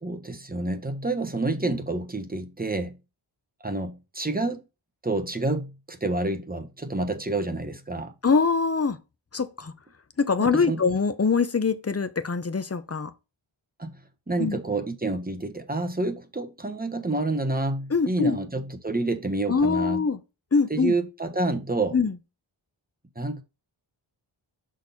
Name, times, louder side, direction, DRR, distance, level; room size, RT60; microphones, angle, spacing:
voice 1, 0.0-3.0 3.6-4.6 5.0-8.1 10.4-10.8 13.8-13.9 14.3-20.1 20.7-22.0 23.1-23.4, right 2 dB, 20° right, 1.1 m, -28 dB
voice 2, 8.2-9.0 9.3-9.7 10.2-13.1 14.4-14.6 17.9-18.4 19.5-20.2 20.5-20.9 21.9-22.1, left 5 dB, 30° left, 0.7 m, -23 dB
6.2 x 4.0 x 4.2 m
wide cardioid pair, 60°, 49 cm